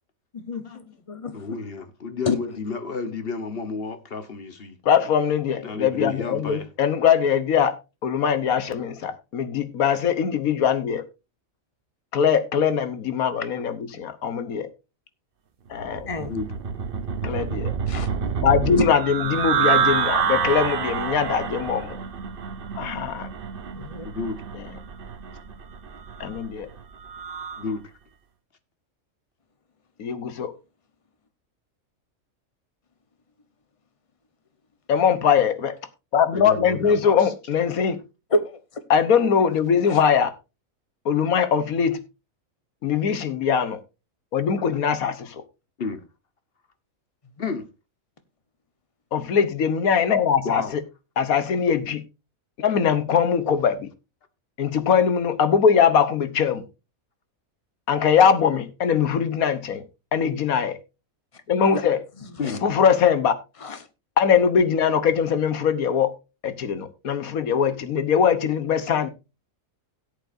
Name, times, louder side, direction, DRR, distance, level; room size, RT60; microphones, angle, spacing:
voice 1, 0.3-1.4 2.2-2.4 16.1-16.3 17.9-18.1 18.8-18.9 23.8-24.1 38.3-38.8 61.7-61.8 62.2-62.6 63.6-63.8, left 2 dB, 25° left, 1.0 m, -28 dB
voice 2, 1.3-4.8 5.6-6.7 16.2-16.5 18.6-18.9 24.0-24.4 27.6-27.9 36.3-37.3 45.8-46.1 47.4-47.6 50.4-50.7 62.4-62.6, left 4 dB, 45° left, 1.3 m, -31 dB
voice 3, 4.8-7.8 8.0-11.0 12.1-14.7 15.7-16.1 17.2-17.7 18.4-22.0 22.8-23.3 26.2-26.7 30.0-30.5 34.9-35.8 36.1-38.0 38.9-40.3 41.0-42.0 42.8-43.8 44.3-45.4 49.1-50.6 51.2-52.0 52.6-53.9 54.6-56.6 57.9-59.8 60.1-60.8 61.5-62.0 62.6-63.3 64.2-66.1 66.4-69.1, left 7 dB, 90° left, 1.5 m, -21 dB
sound 1, 15.8-27.7, right 7 dB, 45° right, 0.9 m, -28 dB
17.5 x 8.3 x 2.6 m
omnidirectional pair, 1.5 m